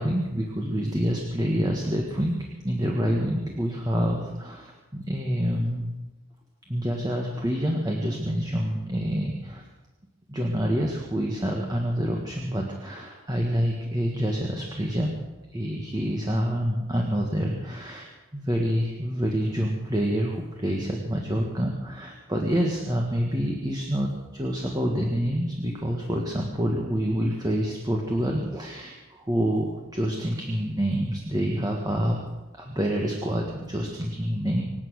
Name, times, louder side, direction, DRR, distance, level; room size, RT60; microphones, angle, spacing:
voice 1, 0.0-2.4 2.6-5.9 6.7-9.6 10.3-15.1 15.5-32.2 32.5-34.6, equal, 20° right, 0 dB, 1.6 m, -27 dB
25.5 x 8.8 x 6.4 m, 1.1 s
head